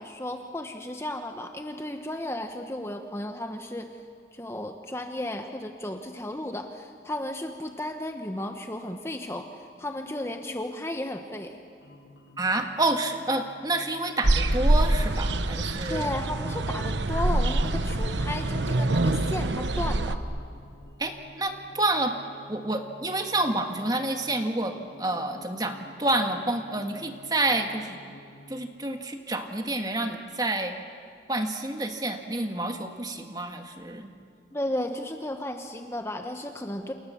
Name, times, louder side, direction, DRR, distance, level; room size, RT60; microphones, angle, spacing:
voice 1, 0.0-4.0 4.3-11.6 15.9-20.2 34.5-36.9, left 1 dB, 15° left, 5 dB, 1.1 m, -34 dB
sound 1, 11.8-28.6, left 1 dB, 80° left, 3.2 m, -51 dB
voice 2, 12.4-16.1 21.0-22.1 22.5-28.0 28.5-30.8 31.3-34.1, right 2 dB, 20° right, 5 dB, 1.8 m, -29 dB
sound 2, 14.2-20.2, right 2 dB, 80° right, 1.1 m, -25 dB
29.0 x 28.5 x 7.3 m, 2.3 s
head